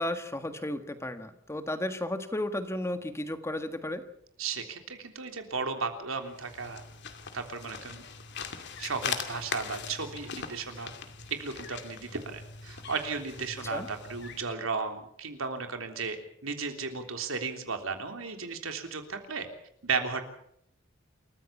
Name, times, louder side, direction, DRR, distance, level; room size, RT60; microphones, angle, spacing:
voice 1, 0.0-4.0 13.6-13.9, left 1 dB, 15° left, 8 dB, 1.7 m, -33 dB
voice 2, 4.4-6.8 7.3-8.0 8.8-10.9 11.3-16.2 16.4-19.5 19.8-20.3, right 4 dB, 85° right, 5 dB, 3.4 m, -34 dB
sound 1, 6.2-14.5, left 6 dB, 60° left, 2.4 m, -41 dB
28.5 x 14.5 x 7.3 m, 0.69 s
head